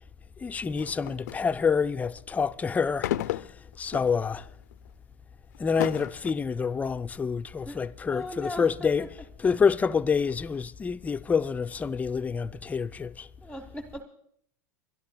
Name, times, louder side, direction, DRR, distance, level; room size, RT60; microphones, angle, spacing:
voice 1, 0.4-3.5 3.8-4.5 5.6-9.1 9.4-13.3, left 5 dB, 15° left, 0.5 m, -27 dB
sound 1, 0.8-1.5 3.0-4.2 4.7-4.9 5.5-6.3, left 14 dB, 85° left, 0.5 m, -32 dB
voice 2, 8.1-9.1 9.4-9.6 13.4-14.0, left 1 dB, ahead, 1.1 m, -39 dB
29.5 x 11.5 x 2.3 m
supercardioid pair, 120°, 9 cm